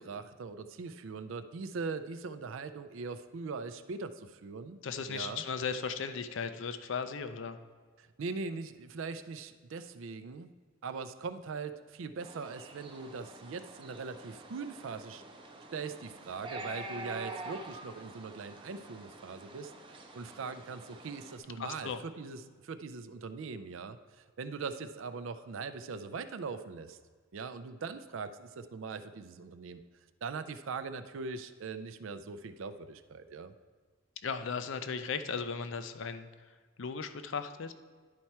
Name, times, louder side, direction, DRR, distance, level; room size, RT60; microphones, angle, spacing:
voice 1, 0.0-4.8 5.1-5.4 8.0-10.5 10.8-15.2 15.7-27.0 27.3-29.8 30.2-33.5, right 4 dB, 70° right, 11 dB, 0.4 m, -41 dB
voice 2, 4.8-7.6 21.6-22.0 34.2-36.3 36.8-37.7, left 5 dB, 65° left, 10 dB, 0.5 m, -36 dB
sound 1, 12.2-21.4, right 2 dB, 25° right, 0.6 m, -47 dB
10.5 x 4.6 x 4.3 m, 1.5 s
head